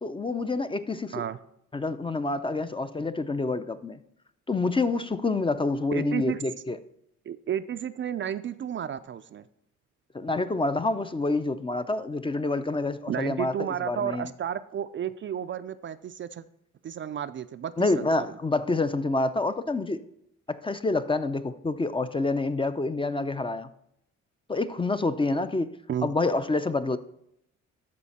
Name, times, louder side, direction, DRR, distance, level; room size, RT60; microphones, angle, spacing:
voice 1, 0.0-1.1 1.7-4.0 4.5-6.8 10.1-13.5 13.9-14.3 17.8-20.0 20.5-23.7 24.5-25.7 26.0-27.0, left 3 dB, 15° left, 11 dB, 0.4 m, -27 dB
voice 2, 5.9-6.4 7.3-9.5 13.1-16.4 16.8-18.3 25.9-26.1, right 9 dB, 40° right, 12 dB, 0.4 m, -32 dB
13.0 x 4.3 x 4.2 m, 0.74 s
cardioid pair, 90°, 30 cm